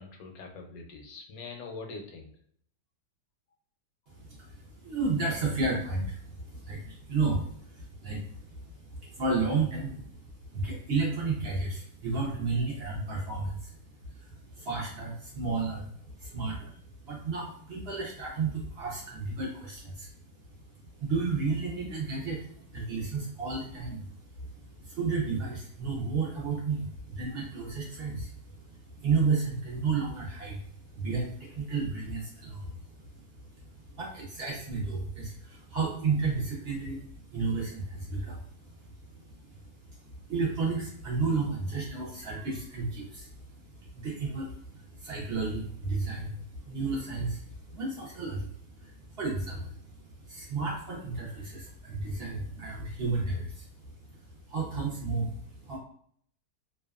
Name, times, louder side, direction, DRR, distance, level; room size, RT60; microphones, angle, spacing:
voice 1, 0.0-2.3, left 4 dB, 75° left, 2 dB, 1.0 m, -43 dB
voice 2, 4.1-20.2 20.4-55.8, right 4 dB, 60° right, -3 dB, 0.6 m, -33 dB
2.7 x 2.2 x 2.3 m, 0.62 s
omnidirectional pair, 1.7 m